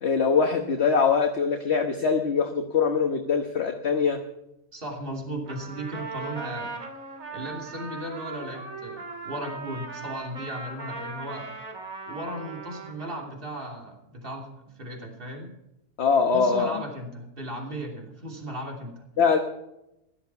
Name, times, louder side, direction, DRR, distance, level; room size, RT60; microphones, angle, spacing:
voice 1, 0.0-4.2 16.0-16.8 19.2-19.4, left 5 dB, 55° left, 4 dB, 1.4 m, -23 dB
voice 2, 4.7-6.7 7.3-11.5 12.1-14.5 14.8-15.5 16.3-19.0, right 1 dB, 40° right, 1 dB, 3.2 m, -36 dB
Trumpet, 5.5-13.3, right 3 dB, 75° right, 3.0 m, -39 dB
16.5 x 12.5 x 5.8 m, 0.87 s
omnidirectional pair, 1.4 m